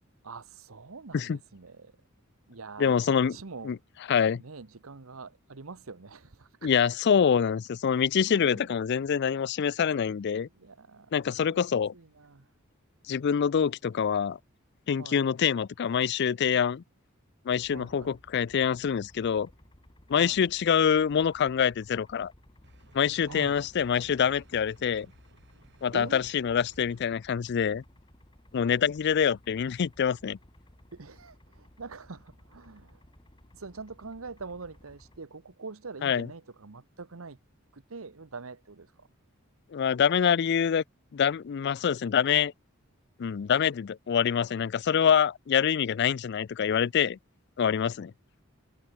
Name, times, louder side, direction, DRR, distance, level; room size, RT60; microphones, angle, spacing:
voice 1, 0.2-1.9 2.5-3.7 4.4-6.7 8.3-8.7 10.4-11.7 11.9-12.5 15.0-15.3 17.7-18.2 20.1-20.4 23.2-23.6 25.9-26.2 30.9-33.0 33.5-37.4 37.7-39.1, right 4 dB, 80° right, 1.1 m, -44 dB
voice 2, 2.8-3.4 3.6-3.8 4.1-4.4 6.6-10.5 11.1-11.9 13.1-14.4 14.9-16.8 17.5-19.5 20.1-22.3 22.9-25.1 25.8-27.8 28.5-30.4 36.0-36.3 39.7-40.8 41.1-42.5 43.2-47.2 47.6-48.1, left 7 dB, 55° left, 0.4 m, -25 dB
sound 1, 17.5-35.2, left 1 dB, 25° left, 2.3 m, -57 dB
sound 2, 22.6-27.0, right 1 dB, 55° right, 5.3 m, -58 dB
head